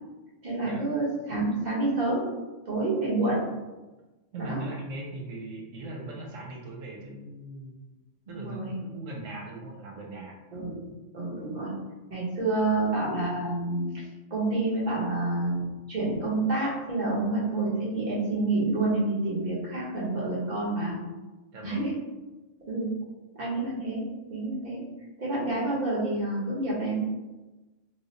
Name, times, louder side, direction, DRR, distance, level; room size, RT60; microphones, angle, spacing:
voice 1, 0.4-2.3 2.6-3.4 4.4-4.6 8.3-8.7 10.5-10.8 11.1-11.7 12.1-14.0 14.3-21.0 21.6-22.0 22.7-22.9 23.3-24.9 25.2-27.0, right 2 dB, 40° right, -7 dB, 1.1 m, -28 dB
voice 2, 4.3-7.8 8.3-10.4 12.6-12.7 21.5-21.9, right 2 dB, 85° right, -1 dB, 1.0 m, -39 dB
3.1 x 2.1 x 3.9 m, 1.2 s
omnidirectional pair, 1.3 m